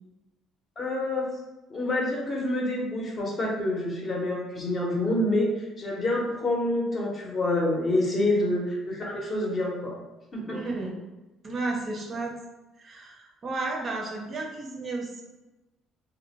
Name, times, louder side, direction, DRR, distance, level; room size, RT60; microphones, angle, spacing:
voice 1, 0.8-1.3 1.7-9.9 10.3-10.6, left 1 dB, 30° left, -2 dB, 0.6 m, -27 dB
voice 2, 10.5-11.0 11.4-12.4 12.8-15.2, right 2 dB, 35° right, 0 dB, 0.4 m, -33 dB
2.5 x 2.0 x 2.8 m, 1.1 s
cardioid pair, 135°, 0 cm